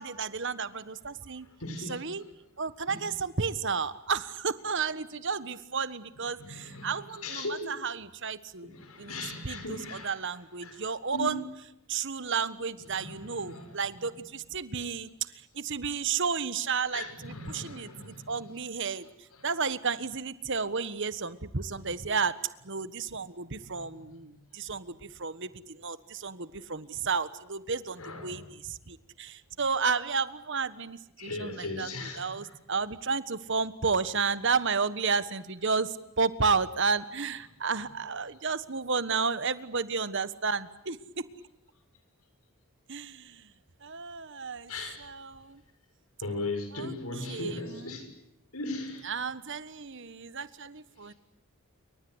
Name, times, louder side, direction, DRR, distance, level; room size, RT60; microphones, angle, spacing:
voice 1, 0.0-1.5 1.9-2.2 2.6-8.7 9.0-11.5 11.9-31.9 32.2-41.2 42.9-43.5 43.8-44.7 45.0-45.6 46.7-48.0 49.0-51.1, right 5 dB, 55° right, 1.4 m, -32 dB
voice 2, 1.6-2.0 2.9-3.0 6.4-6.9 7.2-7.8 8.6-10.1 10.6-10.8 11.1-11.3 12.9-13.7 16.9-18.4 21.6-21.8 23.6-24.2 28.0-28.5 31.2-32.4 44.7-45.0 46.2-48.1 48.5-49.1 51.0-51.2, left 2 dB, 80° left, 6.5 m, -38 dB
28.5 x 24.5 x 8.1 m
head